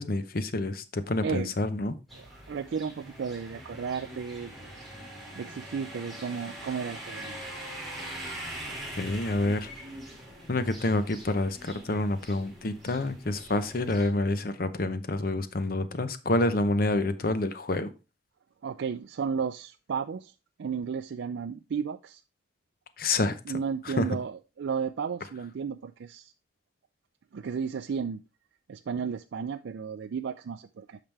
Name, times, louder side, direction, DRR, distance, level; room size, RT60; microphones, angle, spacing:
voice 1, 0.0-1.9 9.0-9.7 10.5-17.9 23.0-23.4 23.8-24.1, left 2 dB, 50° left, 0.8 m, -28 dB
sound 1, 2.1-14.1, right 1 dB, ahead, 2.5 m, -43 dB
voice 2, 2.1-4.7 5.3-7.3 18.6-20.3 20.6-22.2 23.5-26.3 27.3-28.2 28.7-31.0, right 6 dB, 80° right, 0.4 m, -33 dB
8.9 x 5.8 x 3.3 m
head